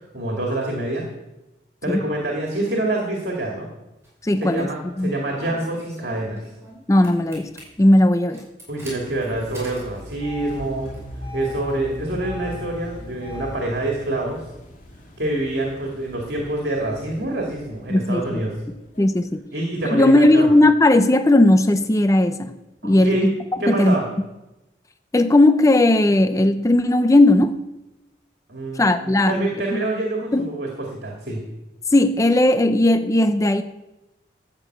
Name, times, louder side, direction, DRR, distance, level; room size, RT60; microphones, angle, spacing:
voice 1, 0.1-1.0 1.8-3.7 4.4-6.4 8.7-10.9 11.3-14.4 15.2-18.5 19.5-20.5 22.8-23.3 23.6-24.0 28.5-31.4, right 2 dB, 65° right, -1 dB, 2.3 m, -26 dB
Engine starting, 4.0-4.6 5.4-6.8 7.0-7.6 8.3-13.6, left 1 dB, 15° right, 5.5 m, -37 dB
voice 2, 4.2-4.7 5.0-5.1 6.9-7.5 7.8-8.4 17.9-18.4 19.0-19.4 19.8-22.5 22.8-23.4 23.7-24.0 25.1-27.6 28.8-29.8 30.3-30.5 31.9-33.6, left 1 dB, 20° left, 9 dB, 0.5 m, -17 dB
sound 1, 8.9-19.4, left 2 dB, 50° left, 2.6 m, -45 dB
13.0 x 6.8 x 7.8 m, 0.98 s
head